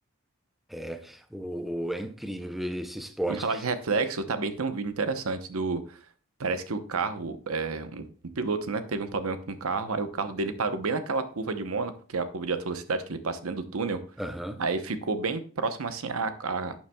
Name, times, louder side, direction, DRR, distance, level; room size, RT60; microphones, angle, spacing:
voice 1, 0.7-3.4 14.2-14.6, right 1 dB, ahead, 0.5 m, -34 dB
voice 2, 3.3-6.0 6.4-8.0 8.4-14.0 14.6-16.7, right 4 dB, 85° right, 0.9 m, -30 dB
11.5 x 7.2 x 2.3 m
head